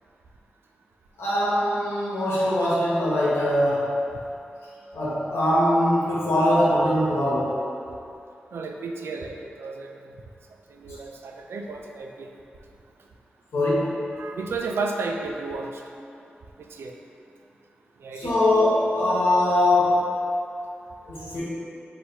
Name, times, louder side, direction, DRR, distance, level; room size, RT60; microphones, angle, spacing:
voice 1, 1.2-4.0 4.9-7.6 13.5-14.0 18.1-20.0 21.1-21.4, left 1 dB, 90° left, -9 dB, 1.1 m, -22 dB
voice 2, 8.5-9.9 10.7-12.3 14.1-15.7 16.7-16.9 18.0-18.4, right 3 dB, 85° right, 2 dB, 0.3 m, -32 dB
4.4 x 2.5 x 4.0 m, 2.7 s
cardioid pair, 50°, 4 cm